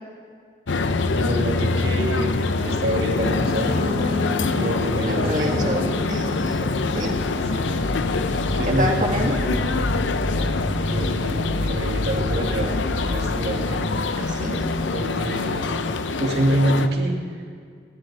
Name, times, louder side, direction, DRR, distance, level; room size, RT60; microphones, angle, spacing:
sound 1, 0.7-16.9, left 3 dB, 90° left, 0.7 m, -25 dB
voice 1, 1.1-4.2 4.5-5.6 7.5-8.0 8.5-9.0 9.3-9.6 10.8-13.8 14.8-15.7 16.2-17.2, right 1 dB, 65° right, 0 dB, 2.2 m, -27 dB
sound 2, 2.3-7.0, left 2 dB, 45° left, 3.9 m, -31 dB
voice 2, 5.0-7.2 8.7-9.4 14.2-14.7, equal, 45° right, -1 dB, 2.1 m, -27 dB
sound 3, 6.9-15.7, left 1 dB, 70° left, 1.2 m, -31 dB
26.0 x 11.5 x 3.3 m, 2.1 s
head